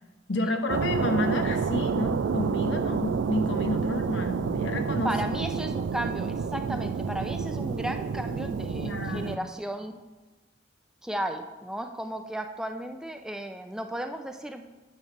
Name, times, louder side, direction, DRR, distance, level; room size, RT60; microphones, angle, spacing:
voice 1, 0.3-5.1 8.8-9.5, left 1 dB, 85° left, 6 dB, 0.9 m, -30 dB
sound 1, 0.7-9.4, right 5 dB, 80° right, 0.3 m, -29 dB
voice 2, 5.0-10.0 11.0-14.6, right 1 dB, 5° right, 5 dB, 0.5 m, -34 dB
9.1 x 3.4 x 6.8 m, 1.2 s
head